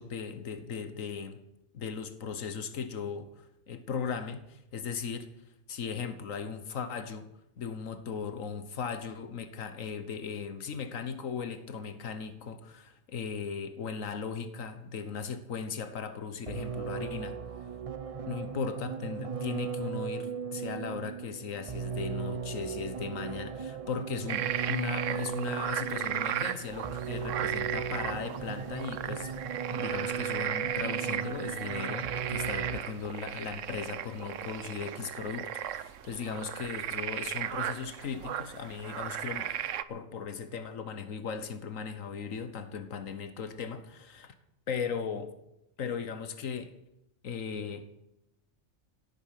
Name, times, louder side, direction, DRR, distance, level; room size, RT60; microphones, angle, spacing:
voice 1, 0.0-1.4 1.7-5.3 5.7-7.3 7.6-17.4 18.3-29.3 29.7-39.5 39.9-44.3 44.7-45.3 45.8-46.7 47.2-47.9, left 6 dB, 85° left, 10 dB, 1.6 m, -37 dB
sound 1, 16.5-33.1, right 6 dB, 35° right, 0.6 m, -37 dB
sound 2, 24.3-39.8, right 10 dB, 75° right, 1.1 m, -36 dB
17.0 x 9.8 x 7.6 m, 0.84 s
omnidirectional pair, 1.3 m